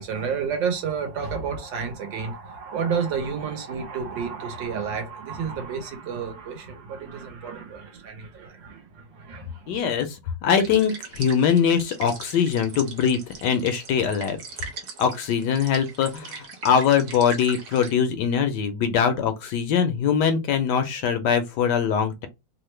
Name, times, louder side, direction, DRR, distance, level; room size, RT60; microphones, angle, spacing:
voice 1, 0.0-9.8, right 6 dB, 75° right, 1.7 m, -31 dB
voice 2, 9.7-10.2 10.4-14.4 14.6-14.7 15.0-22.3, left 7 dB, 75° left, 1.1 m, -22 dB
sound 1, 10.5-17.9, right 5 dB, 55° right, 1.1 m, -40 dB
3.7 x 2.1 x 3.1 m
omnidirectional pair, 2.0 m